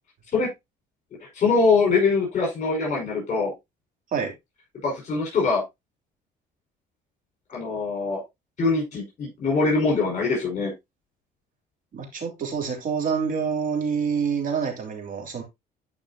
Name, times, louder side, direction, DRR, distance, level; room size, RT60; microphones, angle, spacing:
voice 1, 1.3-3.5 4.8-5.6 7.5-8.2 8.6-10.7, left 4 dB, 45° left, -3 dB, 5.4 m, -23 dB
voice 2, 11.9-15.4, right 6 dB, 50° right, 3 dB, 3.3 m, -27 dB
12.0 x 5.4 x 2.8 m, 0.20 s
cardioid pair, 110°, 17 cm